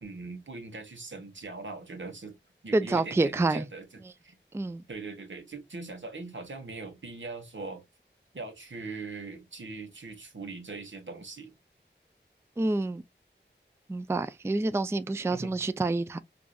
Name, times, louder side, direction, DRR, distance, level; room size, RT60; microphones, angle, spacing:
voice 1, 0.0-2.3 2.6-4.4 4.9-7.8 8.3-11.5 15.3-15.6, right 3 dB, 80° right, 1.1 m, -41 dB
voice 2, 2.7-3.7 4.5-4.8 12.6-13.0 13.9-16.2, right 2 dB, 15° right, 0.3 m, -27 dB
4.7 x 2.6 x 2.3 m
wide cardioid pair, 55°, 19 cm